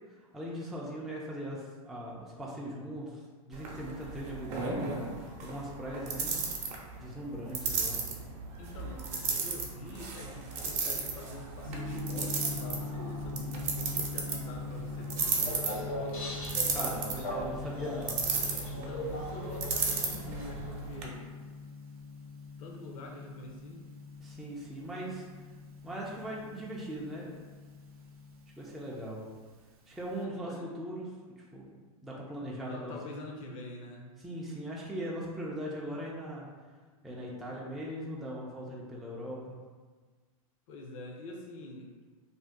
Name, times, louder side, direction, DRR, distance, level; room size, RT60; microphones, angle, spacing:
voice 1, 0.1-6.4 7.0-8.0 16.7-18.2 24.2-25.3 25.8-27.3 28.6-29.3 29.9-31.1 31.5-31.7 32.0-33.2 34.2-36.5 37.0-39.6, equal, ahead, -5 dB, 0.3 m, -40 dB
sound 1, 3.5-21.0, right 4 dB, 40° right, 0.6 m, -35 dB
voice 2, 8.6-16.3 17.2-17.6 18.3-21.3 22.6-23.9 30.1-30.7 32.7-34.1 40.7-41.9, left 2 dB, 60° left, 0 dB, 0.6 m, -45 dB
Gong, 11.6-30.2, left 4 dB, 85° right, 0.6 m, -43 dB
sound 2, 15.2-20.7, left 1 dB, 75° left, 1.1 m, -40 dB
2.6 x 2.2 x 3.5 m, 1.4 s
hypercardioid pair, 115°, 19 cm